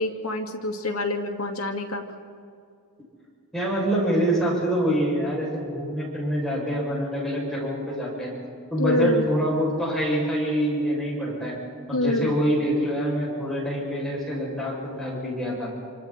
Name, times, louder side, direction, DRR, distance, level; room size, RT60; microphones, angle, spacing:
voice 1, 0.0-2.0 8.8-9.3 11.9-12.4, left 2 dB, 70° left, 3 dB, 2.4 m, -26 dB
voice 2, 3.5-8.3 8.7-11.6 11.9-15.7, equal, ahead, -5 dB, 7.2 m, -25 dB
29.0 x 26.0 x 4.5 m, 2.3 s
head